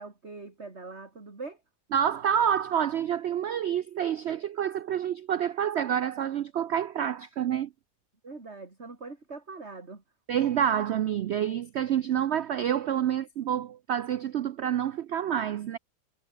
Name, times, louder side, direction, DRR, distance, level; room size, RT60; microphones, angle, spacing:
voice 1, 0.0-1.6 8.2-10.0, right 3 dB, 40° right, 3.5 m, -42 dB
voice 2, 1.9-7.7 10.3-15.8, right 9 dB, 75° right, 0.6 m, -28 dB
omnidirectional pair, 1.7 m